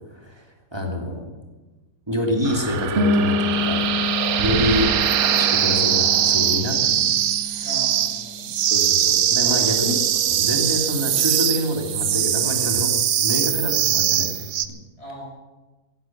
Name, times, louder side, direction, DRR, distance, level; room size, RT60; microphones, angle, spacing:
voice 1, 0.1-0.4 0.7-1.3 2.1-3.8 4.4-4.9 5.2-7.7 8.7-12.9 13.2-14.4, left 1 dB, 15° right, 1 dB, 2.7 m, -26 dB
sound 1, 2.4-14.7, right 10 dB, 75° right, 1.2 m, -21 dB
sound 2, 3.0-8.6, left 3 dB, 45° right, 2.4 m, -27 dB
voice 2, 7.6-8.6 9.4-9.8 15.0-15.2, equal, 50° left, -4 dB, 7.0 m, -40 dB
17.0 x 11.0 x 7.3 m, 1.2 s
omnidirectional pair, 1.5 m